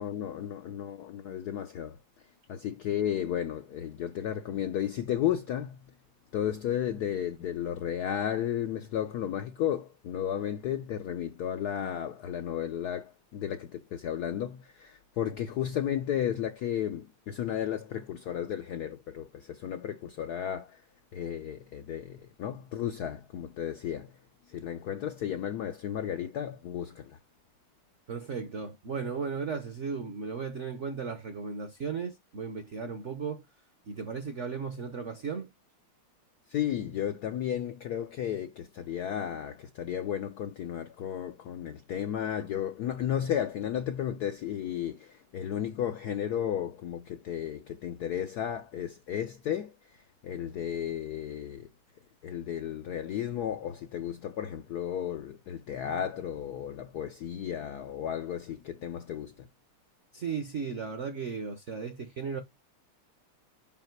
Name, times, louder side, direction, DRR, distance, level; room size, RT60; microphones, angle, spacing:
voice 1, 0.0-2.0 2.5-5.8 6.3-20.8 21.1-24.1 24.5-27.2 36.5-49.7 50.2-51.7 52.2-59.5, left 10 dB, 75° left, 0.9 m, -33 dB
voice 2, 28.1-33.4 33.9-35.5 60.1-62.4, right 5 dB, 55° right, 0.8 m, -35 dB
5.7 x 4.9 x 4.5 m
omnidirectional pair, 2.3 m